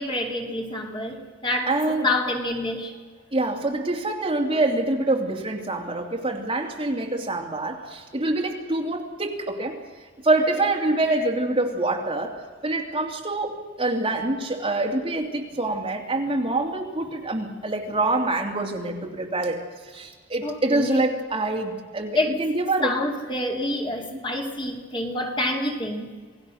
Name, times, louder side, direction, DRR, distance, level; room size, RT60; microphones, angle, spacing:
voice 1, 0.0-1.8 2.0-2.9 20.4-21.0 22.1-22.3 22.8-26.1, left 1 dB, 25° left, 2.5 m, -27 dB
voice 2, 1.7-2.1 3.3-9.8 10.2-12.4 12.6-19.6 19.9-22.9 24.1-24.2, right 2 dB, 30° right, 2.5 m, -25 dB
27.5 x 18.5 x 6.4 m
head